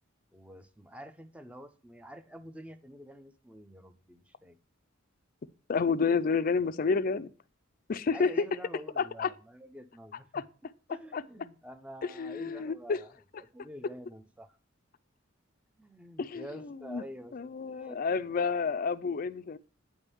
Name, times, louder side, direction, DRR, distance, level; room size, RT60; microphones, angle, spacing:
voice 1, 0.3-4.6 8.1-10.4 10.9-13.1 13.4-14.6 15.8-18.2, equal, 5° right, 0.6 m, -48 dB
voice 2, 5.7-7.3 7.9-8.3 9.0-9.3 10.3-10.4 11.1-11.2 12.2-13.0 16.2-17.0 17.3-19.6, left 5 dB, 45° left, 0.4 m, -30 dB
9.0 x 3.6 x 6.8 m
head